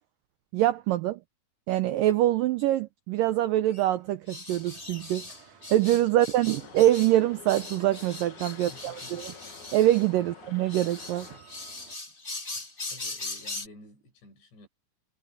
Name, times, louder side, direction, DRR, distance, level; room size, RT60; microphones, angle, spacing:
voice 1, 0.5-1.2 1.7-5.3 5.7-9.3 9.7-11.3, right 13 dB, 80° right, 1.9 m, -24 dB
sound 1, 3.7-3.8 4.3-7.2 7.5-10.1 10.7-13.7, left 2 dB, 20° left, 1.4 m, -40 dB
sound 2, 4.5-12.0, right 6 dB, 50° right, 6.2 m, -56 dB
voice 2, 6.1-6.5 8.6-9.3 10.2-10.3 12.9-14.7, left 2 dB, 80° left, 9.4 m, -52 dB
sound 3, 6.3-11.4, left 8 dB, 55° left, 2.5 m, -49 dB
omnidirectional pair, 4.9 m